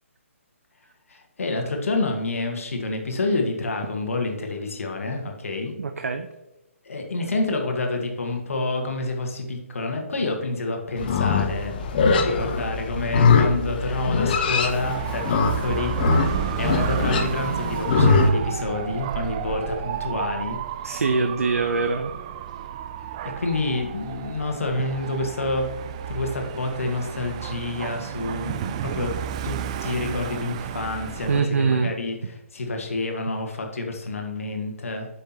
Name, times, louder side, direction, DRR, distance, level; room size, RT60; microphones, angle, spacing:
voice 1, 1.1-5.7 6.8-11.8 12.1-20.6 23.1-29.1 29.4-35.1, left 2 dB, 75° left, 3 dB, 1.5 m, -28 dB
voice 2, 5.8-6.3 20.8-22.1 31.3-31.9, right 4 dB, 80° right, 6 dB, 0.6 m, -23 dB
Livestock farm animals working animals, 11.0-18.3, left 4 dB, 40° left, 0.8 m, -22 dB
Dog / Motorcycle, 14.6-31.4, right 9 dB, 25° right, 0.3 m, -32 dB
8.1 x 5.7 x 2.9 m, 0.93 s
hypercardioid pair, 155°, 8 cm